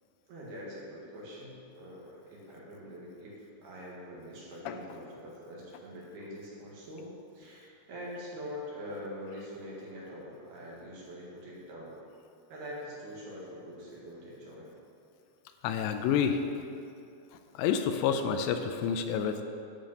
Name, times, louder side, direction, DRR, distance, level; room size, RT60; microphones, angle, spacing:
voice 1, 0.3-7.1 7.3-11.9 12.5-14.7, equal, 65° right, -5 dB, 3.4 m, -44 dB
voice 2, 15.6-16.4 17.6-19.4, left 7 dB, 85° left, 7 dB, 2.6 m, -28 dB
9.8 x 5.2 x 7.7 m, 2.5 s
omnidirectional pair, 5.3 m